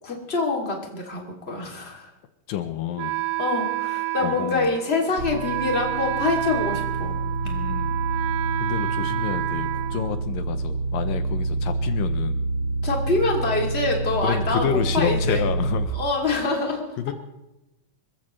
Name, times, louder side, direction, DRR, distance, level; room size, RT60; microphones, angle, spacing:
voice 1, 0.0-2.1 3.4-7.1 7.4-7.6 12.8-15.5 15.9-16.9, left 3 dB, 20° left, 0 dB, 2.6 m, -25 dB
voice 2, 2.5-3.2 4.2-4.7 7.4-8.0 8.6-12.5 14.2-16.0 17.0-17.1, left 10 dB, 80° left, 9 dB, 2.5 m, -29 dB
Wind instrument woodwind instrument, 3.0-10.7, right 17 dB, 80° right, 2.3 m, -30 dB
sound 1, 5.2-15.9, right 3 dB, 45° right, 1.8 m, -28 dB
26.0 x 15.0 x 3.2 m, 0.95 s
omnidirectional pair, 4.1 m